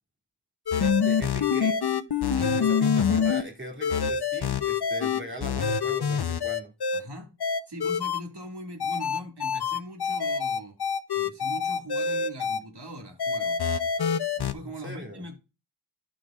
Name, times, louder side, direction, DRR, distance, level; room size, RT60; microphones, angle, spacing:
sound 1, 0.7-3.4 3.8-7.0 7.4-8.2 8.8-12.6 13.2-14.5, left 6 dB, 60° left, 0.7 m, -26 dB
voice 1, 0.7-1.9 2.6-6.7 14.6-15.2, equal, 25° right, 2.8 m, -40 dB
voice 2, 6.9-7.4 7.7-10.8 11.1-13.6 14.4-15.3, equal, 65° right, 2.1 m, -41 dB
14.0 x 5.1 x 2.4 m
wide cardioid pair, 50°, 44 cm